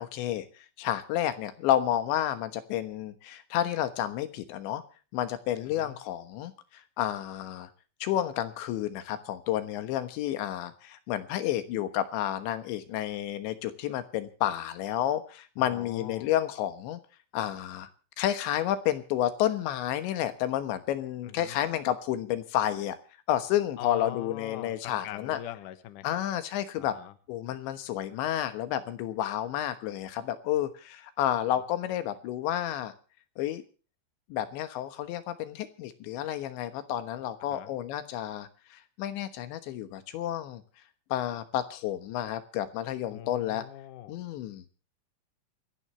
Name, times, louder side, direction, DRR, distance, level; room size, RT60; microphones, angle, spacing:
voice 1, 0.0-4.8 5.1-7.7 8.0-17.0 17.3-17.9 18.2-23.0 23.3-25.4 26.0-27.0 27.3-32.9 33.4-33.6 34.3-40.6 41.1-43.7 44.1-44.6, left 12 dB, 80° left, 11 dB, 3.6 m, -30 dB
voice 2, 15.6-16.3 21.2-21.6 23.8-26.2 26.8-27.1 37.5-37.7 43.1-44.2, left 12 dB, 60° left, 11 dB, 2.4 m, -42 dB
28.5 x 11.0 x 3.3 m, 0.37 s
omnidirectional pair, 5.2 m